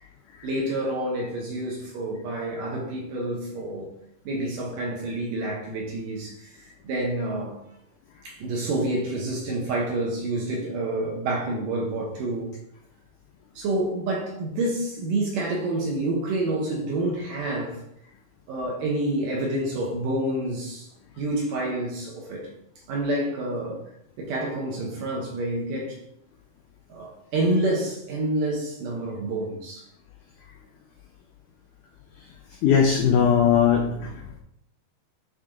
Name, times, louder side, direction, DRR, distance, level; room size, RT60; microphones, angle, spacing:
voice 1, 0.4-3.9 4.3-7.6 8.2-12.5 13.6-17.8 18.5-20.9 21.2-22.5 22.9-23.8 24.2-26.0 26.9-29.9, right 1 dB, 65° right, -2 dB, 2.4 m, -28 dB
voice 2, 32.6-34.4, left 7 dB, 85° left, 0 dB, 1.8 m, -20 dB
10.0 x 3.6 x 3.7 m, 0.77 s
omnidirectional pair, 4.7 m